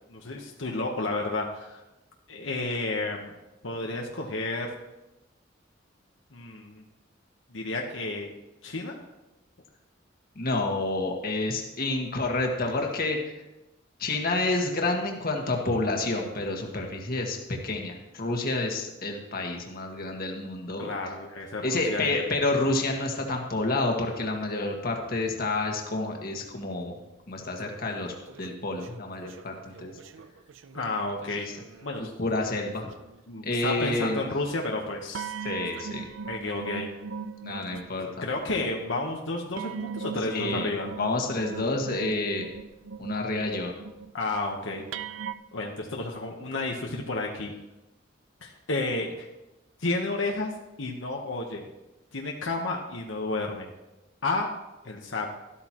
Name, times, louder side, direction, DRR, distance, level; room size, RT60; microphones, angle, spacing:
voice 1, 0.1-1.8 2.3-3.3 3.6-4.7 6.3-6.8 7.5-8.3 8.6-8.9 20.8-22.2 30.7-31.5 31.8-32.1 33.3-35.3 36.3-36.9 38.2-40.9 44.1-44.9 45.5-47.5 48.4-49.3 49.8-50.5 50.8-51.7 52.1-53.7 54.2-54.5 54.8-55.3, left 2 dB, 80° left, 0 dB, 1.1 m, -31 dB
voice 2, 10.4-13.3 14.0-20.9 21.6-26.9 27.3-29.9 32.0-32.9 33.4-34.2 35.4-36.1 37.4-38.2 40.3-40.7 41.0-42.5 43.0-43.7, left 2 dB, 50° left, 1 dB, 1.7 m, -29 dB
sound 1, 27.4-32.5 32.8-33.2 33.8-34.4 35.1-38.7 39.6-45.3, right 6 dB, 80° right, 0.5 m, -40 dB
13.0 x 13.0 x 3.0 m, 0.99 s
head